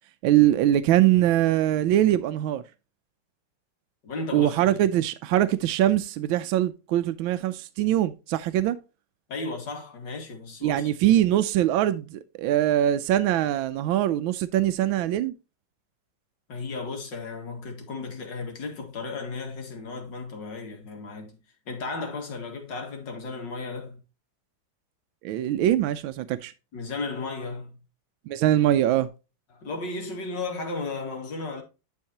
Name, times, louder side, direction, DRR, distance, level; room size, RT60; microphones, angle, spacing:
voice 1, 0.2-2.6 4.3-8.8 10.6-15.3 25.2-26.5 28.3-29.1, right 12 dB, 90° right, 1.4 m, -22 dB
voice 2, 4.0-4.8 9.3-10.9 16.5-21.4 21.7-24.0 26.7-27.8 29.5-31.6, left 3 dB, 65° left, 2.7 m, -34 dB
10.5 x 5.6 x 2.8 m
omnidirectional pair, 2.1 m